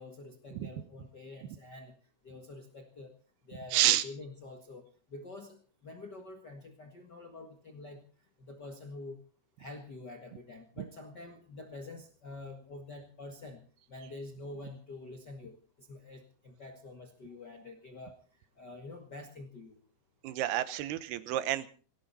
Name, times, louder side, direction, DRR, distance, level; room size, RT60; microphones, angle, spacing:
voice 1, 0.0-1.9 2.2-3.1 3.5-8.0 8.5-9.2 9.6-13.6 13.9-18.2 18.6-19.8, left 2 dB, 75° left, 3 dB, 0.9 m, -47 dB
voice 2, 3.7-4.0 20.2-21.7, right 13 dB, 75° right, 14 dB, 2.7 m, -29 dB
20.0 x 17.5 x 4.1 m, 0.38 s
omnidirectional pair, 5.0 m